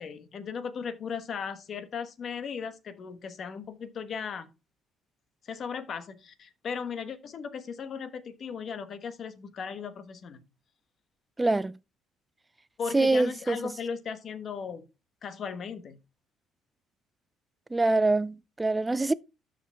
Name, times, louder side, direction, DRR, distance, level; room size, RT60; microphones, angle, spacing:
voice 1, 0.0-4.5 5.4-10.4 12.8-14.8 15.2-16.0, left 6 dB, 40° left, 1.2 m, -37 dB
voice 2, 11.4-11.8 12.9-13.8 17.7-19.1, right 2 dB, 10° right, 0.4 m, -25 dB
13.0 x 5.1 x 3.4 m
cardioid pair, 145°, 0 cm